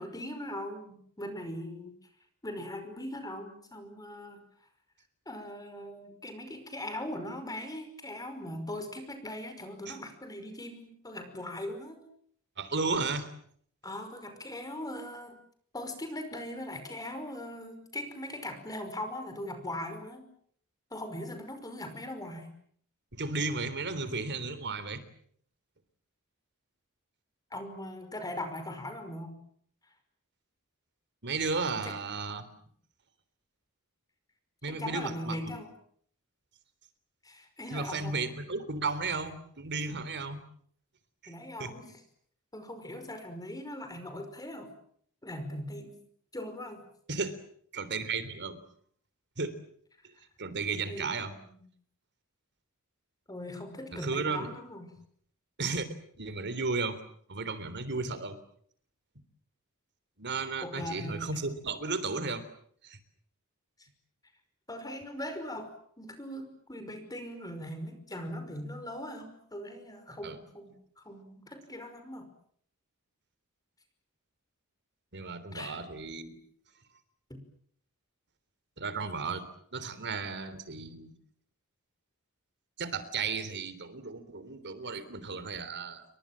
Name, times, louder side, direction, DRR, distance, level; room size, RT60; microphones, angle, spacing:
voice 1, 0.0-2.0 2.4-4.4 5.3-12.0 13.8-15.4 15.7-20.3 20.9-22.5 27.5-29.4 31.7-32.0 34.7-35.7 37.2-38.3 41.3-42.0 42.5-44.7 45.2-46.0 46.3-46.8 50.7-51.6 53.3-54.9 60.6-61.4 63.8-63.9 64.7-72.3 75.5-75.8, left 1 dB, 15° left, 8 dB, 5.5 m, -40 dB
voice 2, 12.6-13.3 23.1-25.0 31.2-32.5 34.6-35.6 37.7-40.4 41.2-41.3 41.6-41.7 47.1-47.4 47.7-48.6 49.4-49.6 50.4-51.3 53.9-54.5 55.6-55.9 56.2-57.0 57.3-58.4 60.2-62.4 62.8-63.0 70.2-70.4 75.1-76.4 78.8-79.5 79.7-81.1 82.8-86.0, right 4 dB, 55° right, 14 dB, 3.5 m, -34 dB
29.5 x 24.0 x 7.6 m, 0.64 s
head